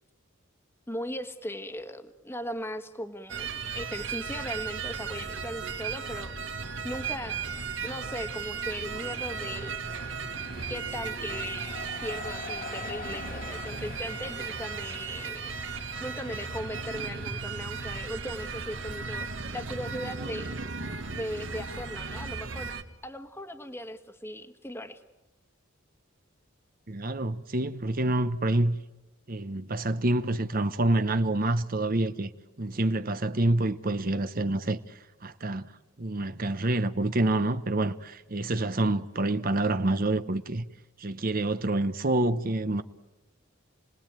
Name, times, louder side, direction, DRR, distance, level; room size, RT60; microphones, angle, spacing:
voice 1, 0.9-7.4 7.8-9.7 10.7-15.5 16.0-20.5 21.1-22.8 23.0-25.0, equal, 10° left, 1.5 m, -38 dB
sound 1, 3.3-22.8, right 5 dB, 65° right, 1.8 m, -36 dB
sound 2, 9.0-17.7, left 4 dB, 45° left, 2.0 m, -45 dB
voice 2, 26.9-28.8 29.3-32.3 32.6-34.8 35.2-35.7 36.0-40.6 41.0-42.8, right 2 dB, 45° right, 0.9 m, -27 dB
29.5 x 20.0 x 9.0 m
head